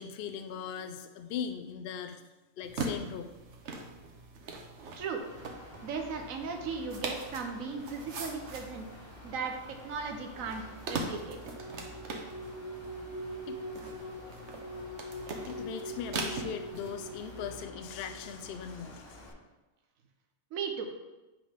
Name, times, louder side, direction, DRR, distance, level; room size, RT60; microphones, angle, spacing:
voice 1, 0.0-2.2 2.6-3.3 13.5-13.6 15.5-19.3, left 8 dB, 65° left, 7 dB, 0.6 m, -39 dB
sound 1, 2.6-17.6, right 3 dB, 60° right, 1.2 m, -42 dB
Mechanical fan, 5.2-19.3, left 1 dB, 20° left, 1.8 m, -51 dB
voice 2, 5.8-8.9 9.2-11.4 20.5-20.9, right 5 dB, 85° right, 4 dB, 1.2 m, -37 dB
sound 2, 10.7-18.5, right 1 dB, 10° right, 1.2 m, -43 dB
8.6 x 3.7 x 5.1 m, 1.1 s
omnidirectional pair, 1.4 m